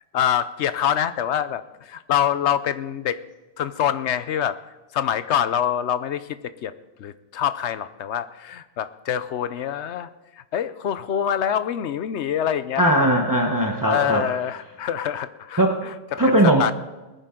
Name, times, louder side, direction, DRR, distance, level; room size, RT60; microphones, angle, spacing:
voice 1, 0.1-3.2 3.6-4.6 4.9-6.7 7.0-10.1 10.4-12.8 13.9-16.7, left 9 dB, 75° left, 13 dB, 1.0 m, -25 dB
voice 2, 12.8-14.2 15.6-15.8 16.2-16.7, right 1 dB, 20° right, 1 dB, 1.1 m, -19 dB
20.5 x 10.0 x 3.8 m, 1.1 s
omnidirectional pair, 1.2 m